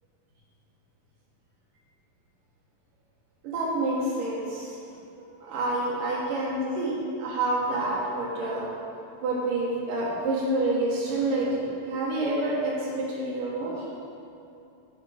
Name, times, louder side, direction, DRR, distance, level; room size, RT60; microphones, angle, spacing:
voice 1, 3.4-4.8 5.5-8.7 9.2-13.8, right 2 dB, 70° right, -5 dB, 2.7 m, -28 dB
8.4 x 5.4 x 4.9 m, 2.7 s
omnidirectional pair, 4.3 m